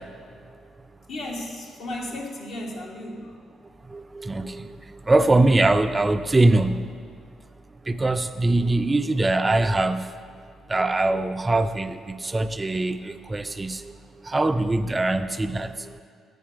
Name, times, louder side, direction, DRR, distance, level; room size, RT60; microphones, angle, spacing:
voice 1, 1.1-3.4, left 1 dB, 70° left, 0 dB, 1.4 m, -35 dB
voice 2, 3.9-4.8 5.1-6.9 7.9-10.1 10.7-14.0 14.2-16.0, right 2 dB, 20° right, 9 dB, 0.3 m, -22 dB
8.5 x 5.2 x 5.0 m, 2.3 s
cardioid pair, 90°, 0 cm